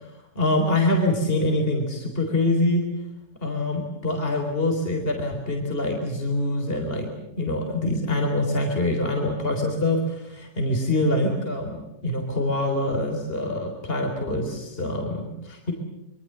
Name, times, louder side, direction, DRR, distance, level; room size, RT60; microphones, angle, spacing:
voice 1, 0.4-2.8 3.4-7.1 7.4-15.7, left 1 dB, 35° left, 3 dB, 4.0 m, -25 dB
26.0 x 24.0 x 8.0 m, 0.85 s
omnidirectional pair, 1.7 m